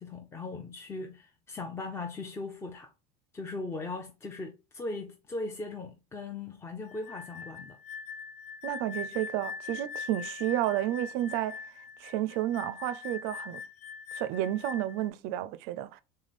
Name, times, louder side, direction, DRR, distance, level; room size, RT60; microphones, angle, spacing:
voice 1, 0.0-2.9 3.3-7.8, left 3 dB, 15° left, 0.5 m, -39 dB
sound 1, 6.9-15.1, left 6 dB, 65° left, 0.5 m, -42 dB
voice 2, 8.6-11.6 12.0-13.6 14.1-16.0, right 13 dB, 60° right, 0.4 m, -31 dB
3.7 x 3.2 x 4.1 m
supercardioid pair, 140°, 18 cm